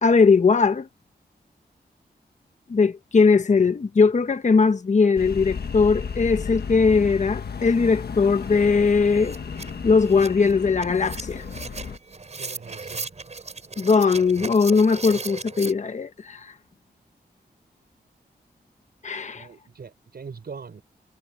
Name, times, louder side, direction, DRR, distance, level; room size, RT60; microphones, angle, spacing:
voice 1, 0.0-0.9 2.7-9.4 9.8-11.4 13.8-16.5 19.0-19.5, left 4 dB, 45° left, 1.1 m, -19 dB
sound 1, 5.2-12.0, left 6 dB, 65° left, 1.5 m, -33 dB
sound 2, 8.4-8.5 8.8-15.7, right 4 dB, 40° right, 5.2 m, -37 dB
voice 2, 12.4-13.0 19.3-20.8, right 5 dB, 65° right, 5.5 m, -41 dB
wide cardioid pair, 135°, 17 cm